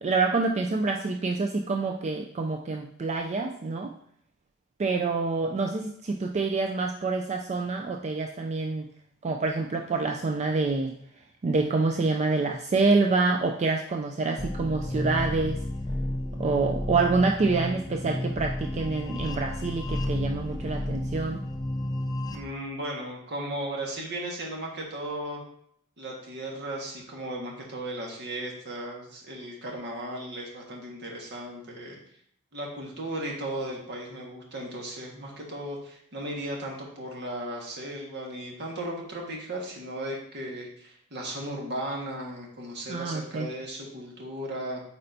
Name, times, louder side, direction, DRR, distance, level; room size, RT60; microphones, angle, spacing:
voice 1, 0.0-3.9 4.8-8.9 9.2-10.9 11.4-15.6 16.4-21.4 42.9-43.5, right 3 dB, 30° right, 3 dB, 0.4 m, -27 dB
sound 1, 14.4-22.4, left 1 dB, 20° left, 0.5 m, -32 dB
voice 2, 22.3-25.4 26.0-32.0 32.5-44.8, right 1 dB, 55° right, -1 dB, 1.5 m, -36 dB
8.6 x 4.3 x 2.7 m, 0.67 s
head